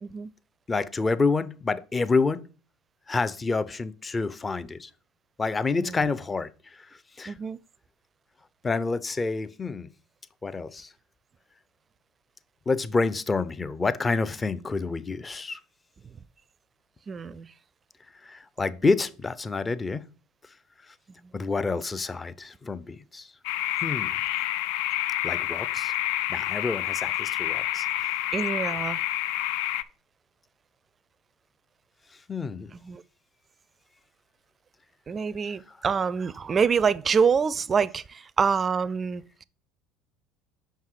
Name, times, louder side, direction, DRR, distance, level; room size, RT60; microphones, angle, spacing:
voice 1, 0.7-2.5 3.1-4.9 5.4-7.3 8.6-9.9 10.4-10.9 12.7-15.6 18.1-20.0 20.9-21.0 21.3-23.3 23.8-24.2 25.2-25.9 26.3-28.2 32.1-32.7 35.7-35.8, left 4 dB, 25° left, 0.6 m, -28 dB
voice 2, 7.3-7.6 17.1-17.5 28.3-29.0 32.8-33.0 35.1-39.4, right 6 dB, 35° right, 0.4 m, -26 dB
sound 1, 23.4-29.8, left 14 dB, 70° left, 0.4 m, -28 dB
5.6 x 5.5 x 4.8 m
hypercardioid pair, 70°, 0 cm